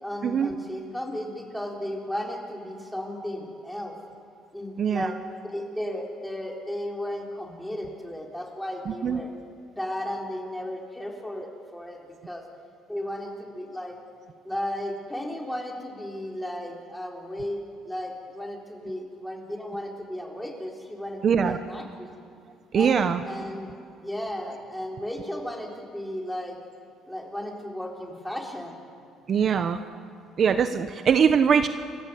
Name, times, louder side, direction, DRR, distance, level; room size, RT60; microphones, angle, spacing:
voice 1, 0.0-4.0 4.5-9.3 9.7-12.0 12.3-12.4 12.9-14.0 14.4-22.1 22.7-23.7 24.0-26.6 27.1-28.8, left 1 dB, 5° left, 0 dB, 4.4 m, -34 dB
voice 2, 4.8-5.1 8.9-9.2 21.2-21.6 22.7-23.2 29.3-29.8 30.4-31.7, right 7 dB, 50° right, 9 dB, 1.0 m, -22 dB
29.0 x 15.0 x 8.4 m, 2.3 s
supercardioid pair, 90°, 0 cm